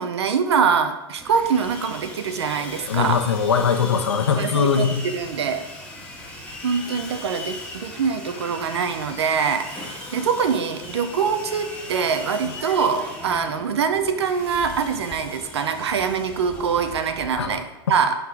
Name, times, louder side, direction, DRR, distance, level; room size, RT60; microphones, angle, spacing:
voice 1, 0.0-3.2 4.4-5.7 6.6-18.2, right 6 dB, 75° right, 8 dB, 1.0 m, -24 dB
Sawing, 1.2-17.6, left 2 dB, 10° left, 2.1 m, -38 dB
voice 2, 2.9-5.0 17.4-17.6, left 6 dB, 85° left, 7 dB, 1.0 m, -21 dB
11.5 x 4.2 x 4.8 m, 1.0 s
hypercardioid pair, 105°, 14 cm